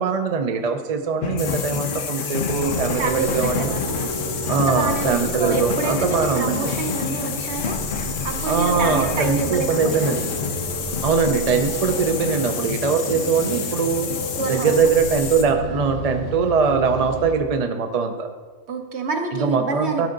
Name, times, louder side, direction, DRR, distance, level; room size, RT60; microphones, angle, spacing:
voice 1, 0.0-3.8 4.5-6.7 8.5-10.3 11.0-14.1 14.5-18.3 19.3-20.1, right 5 dB, 45° right, 5 dB, 0.5 m, -22 dB
sound 1, 1.2-15.1, left 6 dB, 50° left, 0.7 m, -31 dB
sound 2, 1.4-15.5, left 7 dB, 75° left, 1.0 m, -31 dB
sound 3, 2.5-17.3, right 3 dB, 85° right, 1.5 m, -33 dB
voice 2, 3.0-10.2 14.4-14.7 18.7-20.1, right 4 dB, 60° right, 4 dB, 1.2 m, -28 dB
12.0 x 5.5 x 3.9 m, 1.4 s
omnidirectional pair, 1.3 m